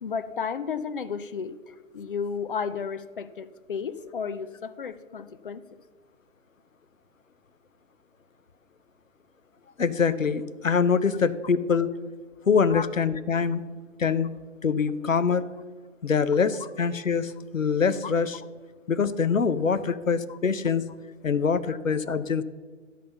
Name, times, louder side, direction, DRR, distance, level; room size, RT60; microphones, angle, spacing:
voice 1, 0.0-5.6 12.7-12.9 18.0-18.1 19.9-20.0 20.3-20.4 21.7-21.8, left 6 dB, 45° left, 14 dB, 0.6 m, -33 dB
voice 2, 9.8-11.9 12.5-13.6 14.0-14.3 14.6-15.5 16.0-18.4 18.9-20.9 21.2-22.4, left 6 dB, 90° left, 15 dB, 0.7 m, -24 dB
12.5 x 5.7 x 7.0 m, 1.4 s
figure-of-eight pair, 135°, 38 cm